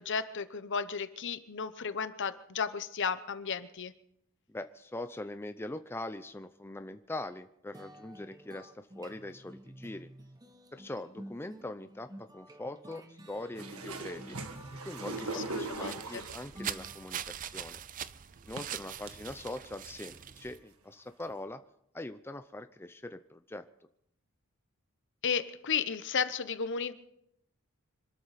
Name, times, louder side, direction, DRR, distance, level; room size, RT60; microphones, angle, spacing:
voice 1, 0.0-3.9 15.3-16.3 25.2-26.9, left 6 dB, 55° left, 12 dB, 0.9 m, -34 dB
voice 2, 4.5-10.1 10.7-14.4 14.9-17.8 18.4-21.6 21.9-23.6, left 2 dB, 10° left, 9 dB, 0.5 m, -42 dB
sound 1, 7.7-17.4, right 1 dB, 15° right, 1.0 m, -50 dB
sound 2, 13.5-16.5 17.5-17.6 18.6-19.1 19.7-19.8 20.2-20.6 21.3-21.4, right 3 dB, 75° right, 1.6 m, -40 dB
sound 3, 15.4-20.6, right 9 dB, 40° right, 0.5 m, -42 dB
26.0 x 13.0 x 4.2 m, 0.76 s
head